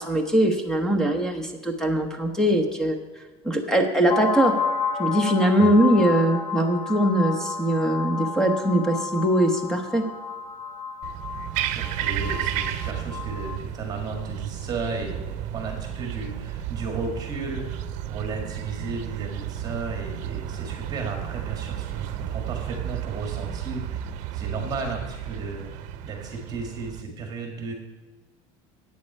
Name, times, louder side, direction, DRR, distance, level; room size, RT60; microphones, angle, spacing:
voice 1, 0.0-3.0 3.4-4.5 5.0-10.0, right 1 dB, 5° left, 5 dB, 1.1 m, -21 dB
sound 1, 4.1-13.6, left 6 dB, 35° left, 0.6 m, -31 dB
sound 2, 11.0-27.0, right 11 dB, 60° right, 0.7 m, -33 dB
voice 2, 11.6-27.7, right 4 dB, 30° right, 2 dB, 1.8 m, -34 dB
10.5 x 8.6 x 5.4 m, 1.3 s
cardioid pair, 165°, 14 cm